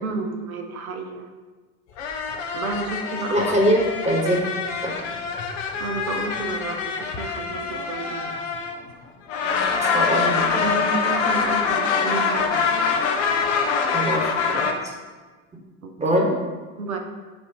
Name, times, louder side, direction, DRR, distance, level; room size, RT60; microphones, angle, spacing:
voice 1, 0.0-1.3 2.5-3.6 4.0-4.2 5.8-8.3 10.3-12.9 15.8-16.2 16.8-17.0, right 3 dB, 75° right, 4 dB, 0.9 m, -31 dB
sound 1, 2.0-8.9 9.3-14.7, left 5 dB, 55° left, 0.9 m, -25 dB
voice 2, 3.3-3.8 4.0-4.4 4.8-4.9 9.8-10.6 13.9-14.9 16.0-16.3, equal, 15° right, -1 dB, 1.5 m, -22 dB
7.6 x 2.9 x 5.0 m, 1.3 s
figure-of-eight pair, 65°, 43 cm